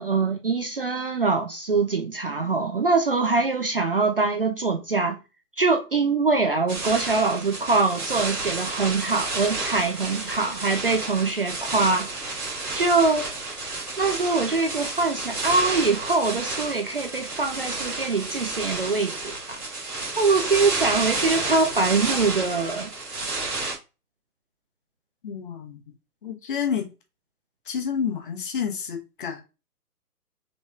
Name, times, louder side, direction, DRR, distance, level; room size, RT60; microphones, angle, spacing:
voice 1, 0.0-5.2 5.6-12.1 12.7-13.3 14.0-19.6 20.2-22.9, right 3 dB, 40° right, 0.5 m, -23 dB
sound 1, 6.7-23.8, right 3 dB, 70° right, 2.2 m, -31 dB
voice 2, 25.2-25.9 26.2-26.9 27.7-29.4, left 7 dB, 35° left, 0.9 m, -29 dB
6.0 x 3.2 x 2.3 m
figure-of-eight pair, 130°, 46 cm